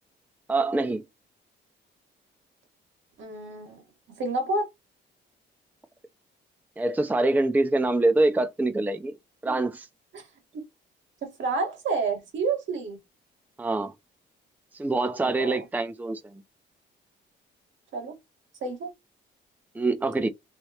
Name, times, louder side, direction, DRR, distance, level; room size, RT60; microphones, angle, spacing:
voice 1, 0.5-1.0 6.8-9.1 9.4-9.9 13.6-13.9 14.7-16.2 19.8-20.3, right 2 dB, 10° right, 0.5 m, -24 dB
voice 2, 3.2-3.8 4.1-4.7 9.4-9.6 10.1-10.3 10.5-10.6 11.2-13.0 15.2-15.6 17.9-18.1 18.6-18.9, right 3 dB, 70° right, 1.6 m, -29 dB
3.2 x 3.0 x 2.8 m
cardioid pair, 90°, 20 cm